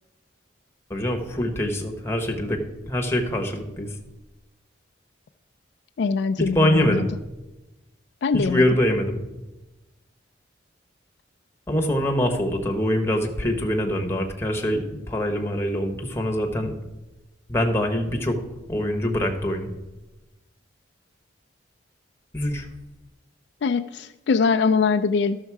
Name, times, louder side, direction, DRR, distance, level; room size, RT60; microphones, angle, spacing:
voice 1, 0.9-3.9 6.4-7.1 8.3-9.2 11.7-16.7 17.5-18.4 18.7-19.7 22.3-22.7, equal, 10° left, 3 dB, 1.0 m, -24 dB
voice 2, 6.0-7.0 8.2-8.6 23.6-25.4, left 5 dB, 60° left, 7 dB, 0.3 m, -22 dB
12.5 x 6.5 x 4.7 m, 1.1 s
head